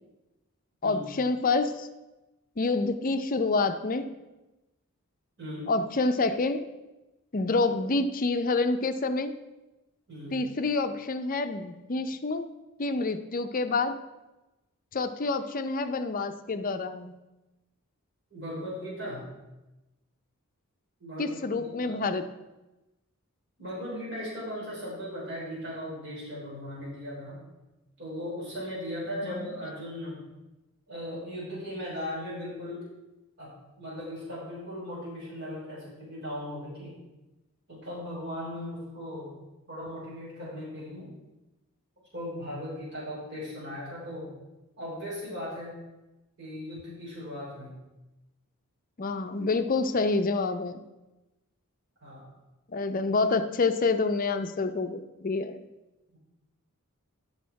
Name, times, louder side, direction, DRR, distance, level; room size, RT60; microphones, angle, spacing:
voice 1, 0.8-1.9 2.6-4.1 5.7-6.6 7.3-9.3 10.3-12.5 12.8-13.9 14.9-17.2 21.2-22.3 29.3-29.5 49.0-50.8 52.7-55.6, left 3 dB, 40° left, 9 dB, 0.5 m, -27 dB
voice 2, 5.4-5.7 10.1-10.4 18.3-19.3 21.0-22.0 23.6-27.4 28.0-30.2 30.9-32.8 33.4-33.5 33.8-37.0 37.7-39.3 39.7-41.1 42.1-44.3 44.8-45.8 46.4-47.8 52.0-52.2 56.1-56.2, equal, 50° right, -7 dB, 4.0 m, -38 dB
11.0 x 6.5 x 4.6 m, 1.0 s
head